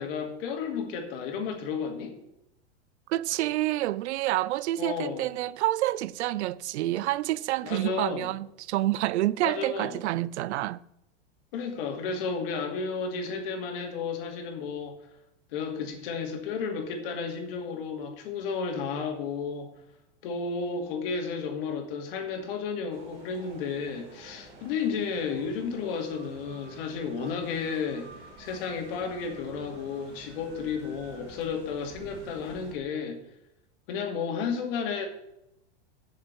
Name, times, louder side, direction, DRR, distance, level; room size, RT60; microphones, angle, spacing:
voice 1, 0.0-2.1 4.8-5.3 7.6-8.3 9.4-10.0 11.5-15.0 15.5-19.7 20.2-28.1 28.4-33.2 33.9-35.1, left 5 dB, 55° left, 2.4 m, -32 dB
voice 2, 3.1-10.8, right 15 dB, 75° right, 0.6 m, -28 dB
sound 1, 22.9-32.7, right 2 dB, 30° right, 2.5 m, -49 dB
7.6 x 6.6 x 7.8 m
supercardioid pair, 155°, 34 cm